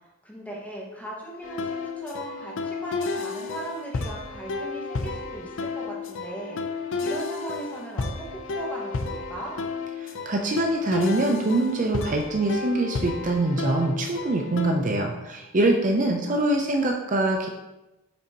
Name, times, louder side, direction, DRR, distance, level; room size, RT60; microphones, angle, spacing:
voice 1, 0.2-9.5 15.9-16.4, right 1 dB, 5° left, -4 dB, 1.7 m, -38 dB
sound 1, 1.4-14.8, left 4 dB, 60° left, 0.6 m, -32 dB
voice 2, 10.0-17.5, right 2 dB, 40° right, 2 dB, 0.6 m, -24 dB
8.6 x 5.7 x 2.9 m, 1.0 s
head